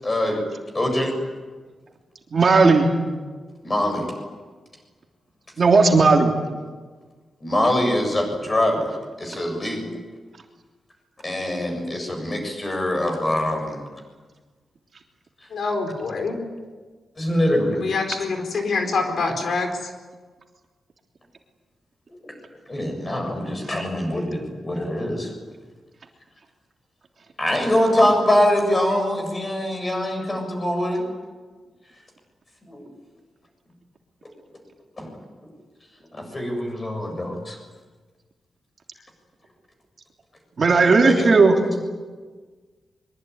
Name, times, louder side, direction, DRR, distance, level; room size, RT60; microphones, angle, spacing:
voice 1, 0.0-0.4 0.7-1.1 3.6-4.0 7.4-9.9 11.2-13.8 17.2-17.8 22.2-22.3 22.7-25.3 27.4-31.0 32.7-32.9 35.0-35.1 36.1-37.6 41.0-41.5, left 1 dB, 20° left, 3 dB, 7.5 m, -23 dB
voice 2, 2.3-2.9 5.6-6.3 40.6-41.5, right 4 dB, 40° right, 2 dB, 3.2 m, -15 dB
voice 3, 15.5-16.4 17.7-19.9, left 4 dB, 60° left, 4 dB, 4.4 m, -25 dB
24.0 x 24.0 x 9.6 m, 1.4 s
wide cardioid pair, 165°, 0 cm